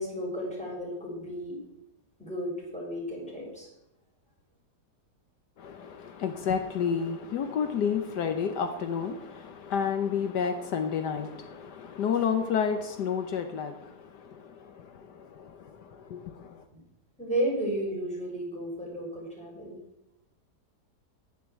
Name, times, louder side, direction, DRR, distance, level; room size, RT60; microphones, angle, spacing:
voice 1, 0.0-1.6 2.2-3.7 17.2-19.8, equal, 5° left, 6.3 m, -33 dB
voice 2, 5.6-16.6, left 7 dB, 75° left, 1.5 m, -31 dB
11.0 x 10.0 x 7.3 m
omnidirectional pair, 1.8 m